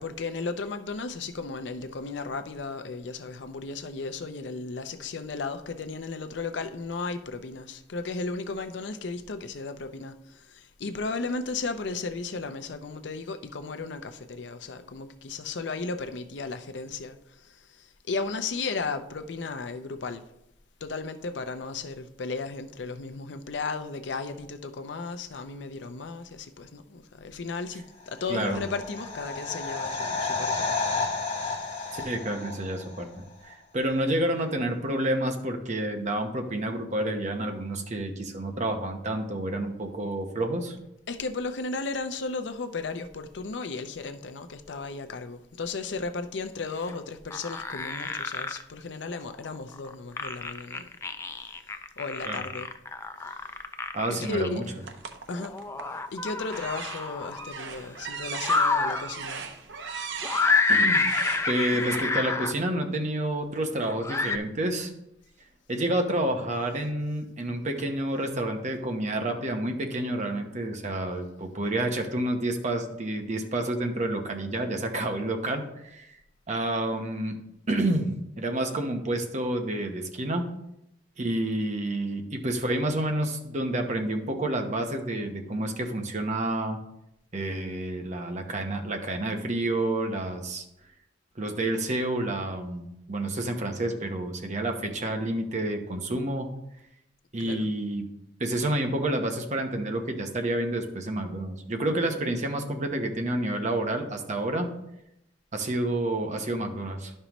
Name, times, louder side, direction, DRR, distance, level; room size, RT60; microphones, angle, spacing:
voice 1, 0.0-20.2 20.8-32.2 41.1-50.9 52.0-52.7 53.2-53.4 54.1-54.6 55.3-55.6 56.1-59.5 97.4-97.7, left 4 dB, 70° left, 0.6 m, -35 dB
sound 1, 28.2-33.0 33.3-33.4, left 4 dB, 35° left, 2.2 m, -31 dB
voice 2, 28.3-28.6 31.9-33.1 33.4-40.8 52.3-52.4 53.9-54.6 60.7-61.0 61.5-64.9 65.7-76.1 76.5-77.4 77.7-80.4 81.2-86.8 87.3-90.6 91.4-96.5 97.3-98.0 98.4-104.7 105.5-107.1, right 1 dB, 40° right, 0.9 m, -29 dB
sound 2, 46.9-47.0 47.3-48.6 49.7-54.5 55.3-57.4 58.3-59.1 60.2-62.5 63.9-64.4, left 3 dB, 15° left, 0.4 m, -28 dB
sound 3, 54.8-56.0 56.5-62.0, right 5 dB, 70° right, 0.7 m, -38 dB
11.0 x 5.5 x 3.0 m
head